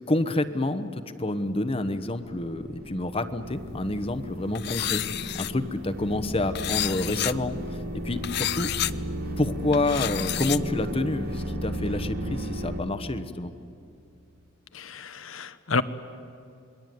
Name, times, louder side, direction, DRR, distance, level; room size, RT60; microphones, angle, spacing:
voice 1, 0.1-7.8 8.0-8.7 9.4-13.5, left 2 dB, 30° left, 10 dB, 1.0 m, -28 dB
sound 1, 1.8-12.8, equal, 50° right, 2.1 m, -35 dB
sound 2, 4.6-5.5 6.6-7.3 8.2-8.9 9.7-10.6, left 13 dB, 55° left, 0.6 m, -30 dB
voice 2, 14.7-15.8, left 4 dB, 85° left, 12 dB, 1.2 m, -29 dB
28.0 x 21.5 x 9.4 m, 2.6 s
head